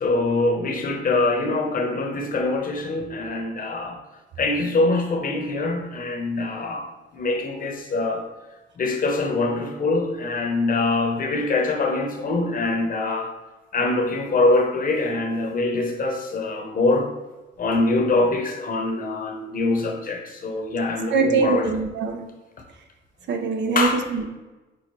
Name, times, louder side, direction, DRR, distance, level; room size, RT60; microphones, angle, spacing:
voice 1, 0.0-4.0 4.4-8.2 8.8-13.3 13.7-17.1 17.6-21.7 23.7-24.0, left 2 dB, 45° left, 2 dB, 0.9 m, -24 dB
voice 2, 21.1-22.3 23.3-24.2, right 4 dB, 65° right, 5 dB, 0.6 m, -22 dB
6.1 x 2.2 x 3.1 m, 1.1 s
cardioid pair, 90°, 20 cm